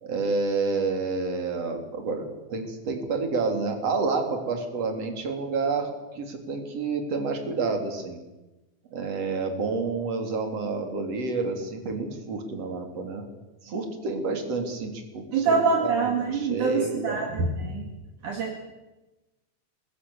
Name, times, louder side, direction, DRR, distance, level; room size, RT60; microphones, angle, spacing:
voice 1, 0.0-8.2 8.9-13.2 13.6-17.3, right 4 dB, 45° right, 4 dB, 4.2 m, -29 dB
voice 2, 15.3-17.9 18.2-18.6, right 4 dB, 60° right, 1 dB, 3.6 m, -25 dB
26.5 x 21.0 x 7.2 m, 1.1 s
omnidirectional pair, 4.3 m